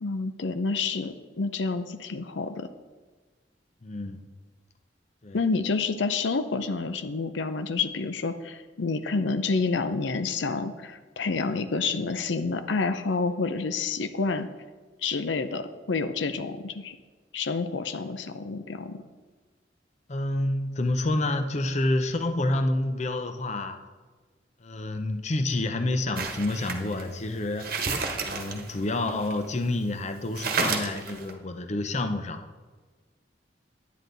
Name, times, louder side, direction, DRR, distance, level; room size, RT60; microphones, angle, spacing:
voice 1, 0.0-2.7 5.3-14.5 15.0-17.0 17.3-19.0, left 4 dB, 85° left, 9 dB, 0.6 m, -29 dB
voice 2, 3.8-4.2 5.2-5.4 20.1-23.8 24.6-27.7 28.2-32.4, left 2 dB, 40° left, 8 dB, 0.7 m, -28 dB
sound 1, 26.2-29.7 30.0-30.1 30.3-31.3, right 4 dB, 55° right, 1.2 m, -31 dB
10.5 x 9.3 x 4.0 m, 1.4 s
head